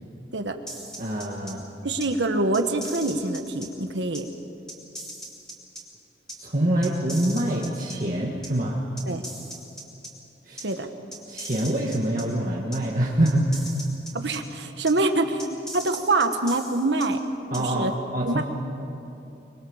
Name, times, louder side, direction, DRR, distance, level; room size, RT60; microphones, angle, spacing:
sound 1, 0.7-1.5 2.0-2.1 2.5-3.7 4.1-4.2 4.7-5.8 6.3-6.4 6.8-7.9 8.4-8.5 9.0-10.1 10.6-10.7 11.1-12.2 12.7-12.8 13.2-14.4 14.9-15.0 15.4-17.1 17.5-17.6, right 1 dB, 5° left, 3.2 m, -38 dB
voice 1, 1.0-1.6 6.4-8.8 10.5-10.7 11.3-13.7 17.5-17.9 18.1-18.4, right 1 dB, 45° right, -3 dB, 1.9 m, -25 dB
voice 2, 1.8-4.3 9.1-9.3 10.6-10.9 14.1-15.4 15.7-17.2 17.6-17.9 18.3-18.4, right 2 dB, 85° right, 7 dB, 1.5 m, -25 dB
24.5 x 23.0 x 7.4 m, 2.9 s
head